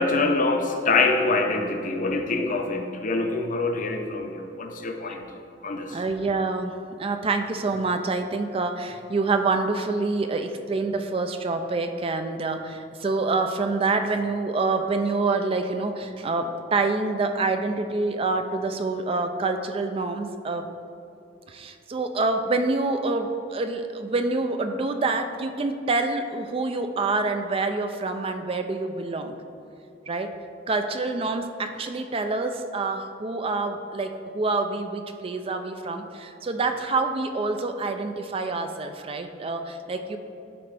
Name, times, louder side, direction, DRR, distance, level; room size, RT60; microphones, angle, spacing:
voice 1, 0.0-5.2 5.6-6.0, left 3 dB, 45° left, 4 dB, 0.7 m, -25 dB
voice 2, 5.9-20.7 21.5-29.3 30.1-30.4 30.7-40.2, right 3 dB, 30° right, 7 dB, 0.4 m, -27 dB
12.0 x 4.3 x 3.4 m, 2.7 s
head